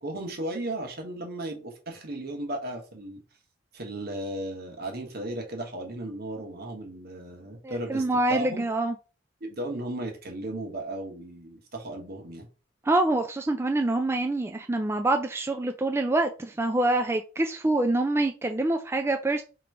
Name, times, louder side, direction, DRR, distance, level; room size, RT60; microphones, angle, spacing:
voice 1, 0.0-3.2 3.7-8.6 9.4-12.5, right 1 dB, 60° right, 1.3 m, -35 dB
voice 2, 7.6-8.9 12.8-19.4, right 2 dB, 15° right, 0.3 m, -26 dB
3.7 x 3.0 x 4.7 m
head